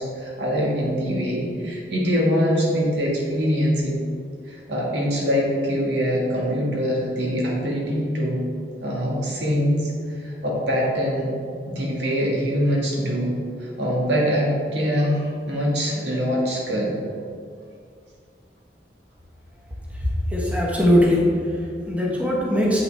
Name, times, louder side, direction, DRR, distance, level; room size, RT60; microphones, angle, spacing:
voice 1, 0.0-4.0 4.5-8.4 8.8-11.3 11.7-17.0, equal, 75° right, -3 dB, 1.7 m, -23 dB
voice 2, 19.9-22.8, equal, 10° right, -4 dB, 1.0 m, -21 dB
7.6 x 5.7 x 3.3 m, 2.2 s
head